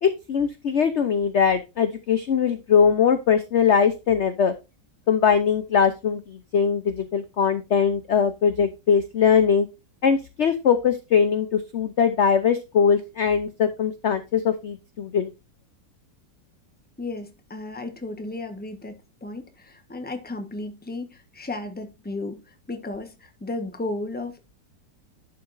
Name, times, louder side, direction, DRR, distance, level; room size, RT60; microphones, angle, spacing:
voice 1, 0.0-4.5 5.1-9.7 10.0-15.3, left 7 dB, 55° left, 0.8 m, -21 dB
voice 2, 17.0-24.4, left 2 dB, 5° left, 1.0 m, -34 dB
11.0 x 5.8 x 2.6 m
omnidirectional pair, 1.9 m